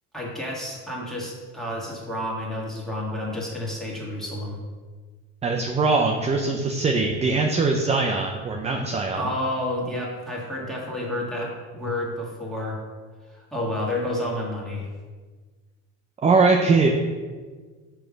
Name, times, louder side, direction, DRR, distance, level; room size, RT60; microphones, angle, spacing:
voice 1, 0.1-4.6 9.2-12.8 13.3-14.9, left 1 dB, ahead, -5 dB, 1.8 m, -30 dB
voice 2, 5.4-9.3 16.2-16.9, right 3 dB, 20° right, 2 dB, 0.5 m, -21 dB
5.9 x 3.4 x 5.0 m, 1.5 s
cardioid pair, 110°, 32 cm